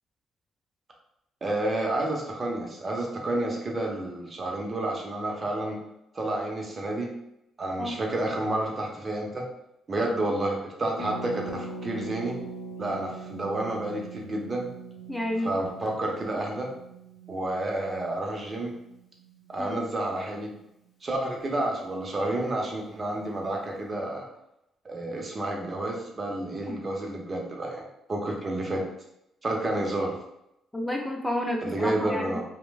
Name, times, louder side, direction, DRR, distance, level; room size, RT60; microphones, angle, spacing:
voice 1, 1.4-5.8 6.1-7.1 7.6-9.4 9.9-12.4 12.8-14.7 15.4-16.7 17.3-18.7 19.5-20.5 21.0-24.3 24.8-27.8 28.1-28.8 29.4-30.1 31.6-32.4, right 1 dB, 35° right, 0 dB, 0.7 m, -30 dB
Harp, 11.0-20.6 20.8-20.9 21.1-21.4, right 3 dB, 65° left, 0.6 m, -42 dB
voice 2, 15.1-15.5 19.6-19.8 26.7-26.8 30.7-32.4, left 1 dB, 10° left, 0 dB, 0.5 m, -30 dB
3.1 x 2.1 x 2.4 m, 0.83 s
hypercardioid pair, 45°, 0 cm